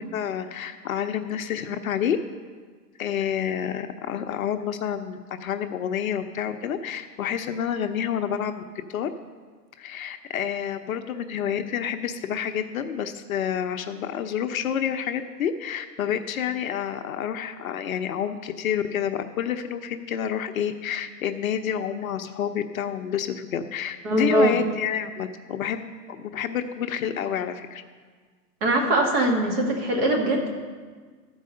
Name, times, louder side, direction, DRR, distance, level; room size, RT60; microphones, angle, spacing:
voice 1, 0.1-2.2 3.0-8.6 8.9-9.1 9.8-25.8 26.1-27.8, left 9 dB, 60° left, 8 dB, 0.7 m, -29 dB
voice 2, 24.0-24.6 28.6-30.5, right 1 dB, 35° right, 1 dB, 1.7 m, -22 dB
13.0 x 4.7 x 6.5 m, 1.5 s
hypercardioid pair, 155°, 49 cm